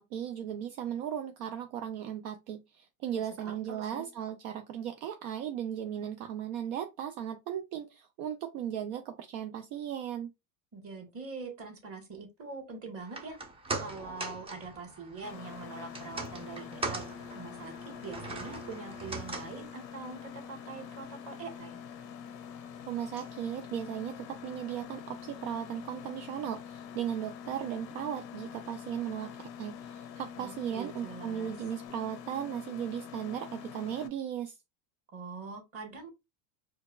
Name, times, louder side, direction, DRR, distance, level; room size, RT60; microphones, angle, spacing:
voice 1, 0.0-10.3 22.9-34.6, right 9 dB, 60° right, 0.6 m, -37 dB
voice 2, 3.4-4.1 10.7-13.4 13.8-17.1 17.3-21.8 30.4-31.5 35.1-36.1, right 4 dB, 30° right, 1.5 m, -43 dB
sound 1, 13.0-25.4 25.7-25.8, right 3 dB, 10° right, 0.5 m, -43 dB
Mechanisms, 15.2-34.1, left 8 dB, 90° left, 0.7 m, -45 dB
4.5 x 2.3 x 2.3 m
hypercardioid pair, 95°, 49 cm